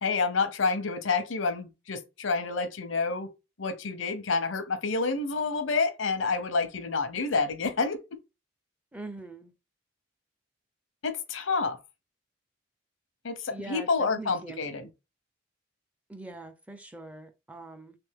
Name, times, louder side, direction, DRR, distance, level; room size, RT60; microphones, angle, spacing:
voice 1, 0.0-3.3 3.6-8.0 11.0-11.8 13.2-14.9, left 4 dB, 90° left, 0.8 m, -28 dB
voice 2, 8.9-9.5 13.5-14.9 16.1-18.0, right 2 dB, 5° right, 0.4 m, -43 dB
3.4 x 3.0 x 3.5 m
head